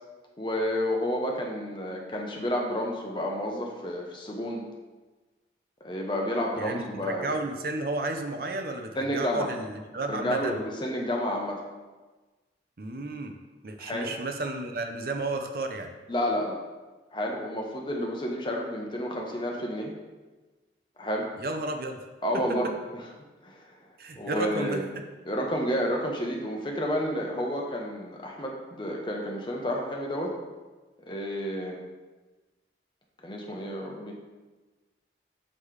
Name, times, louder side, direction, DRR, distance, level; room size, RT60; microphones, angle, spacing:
voice 1, 0.4-4.6 5.8-7.3 9.0-9.5 10.1-11.6 13.8-14.1 16.1-16.6 17.1-19.9 21.0-21.3 22.2-22.7 23.4-23.6 24.2-24.8 25.2-30.3 31.1-31.8 33.2-34.1, equal, 25° left, 0 dB, 0.8 m, -30 dB
voice 2, 6.6-10.6 12.8-13.4 13.6-15.9 21.4-22.0 22.3-22.7 24.0-25.0, right 2 dB, 55° right, 5 dB, 0.5 m, -33 dB
7.5 x 3.2 x 4.7 m, 1.2 s
head